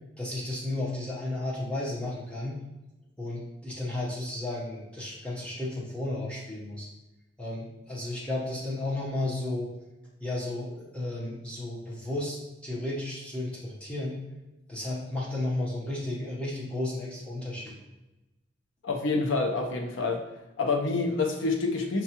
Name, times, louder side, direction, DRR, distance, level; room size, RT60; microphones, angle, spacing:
voice 1, 0.2-2.6 3.2-6.9 7.4-9.7 10.2-14.2 14.7-17.7, left 2 dB, 5° left, -6 dB, 0.8 m, -33 dB
voice 2, 18.8-20.2 20.6-22.0, left 3 dB, 85° left, 2 dB, 0.6 m, -27 dB
5.4 x 2.3 x 2.8 m, 1.0 s
head